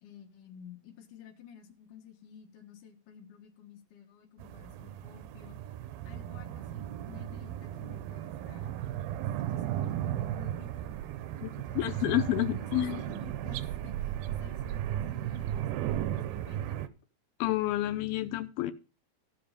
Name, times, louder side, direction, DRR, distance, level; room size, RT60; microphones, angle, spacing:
voice 1, 0.0-5.6 6.0-10.9 11.5-15.8 16.1-16.8, left 8 dB, 65° left, 2.9 m, -52 dB
sound 1, 4.4-16.9, right 12 dB, 85° right, 2.6 m, -35 dB
voice 2, 11.4-13.0 17.4-18.7, left 15 dB, 90° left, 2.7 m, -30 dB
16.0 x 5.9 x 5.1 m
omnidirectional pair, 4.2 m